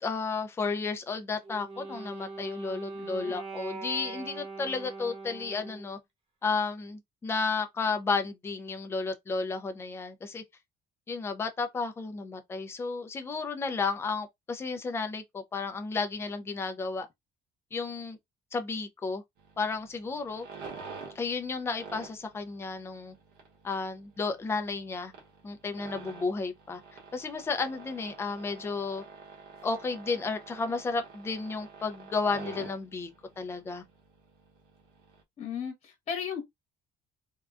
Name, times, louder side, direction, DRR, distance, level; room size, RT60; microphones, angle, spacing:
voice 1, 0.0-6.0 6.4-10.4 11.1-17.1 17.7-18.2 18.5-19.2 19.6-20.5 21.2-23.1 23.6-25.1 25.4-26.8 27.1-29.0 29.6-33.1 33.4-33.8, left 4 dB, 15° left, 0.4 m, -32 dB
Wind instrument woodwind instrument, 1.4-6.0, right 3 dB, 30° right, 0.9 m, -41 dB
voice 2, 2.9-3.3 35.4-36.4, left 7 dB, 35° left, 1.1 m, -36 dB
sound 1, 19.4-35.2, right 5 dB, 60° right, 1.1 m, -48 dB
3.6 x 2.2 x 2.4 m
cardioid pair, 175°, 19 cm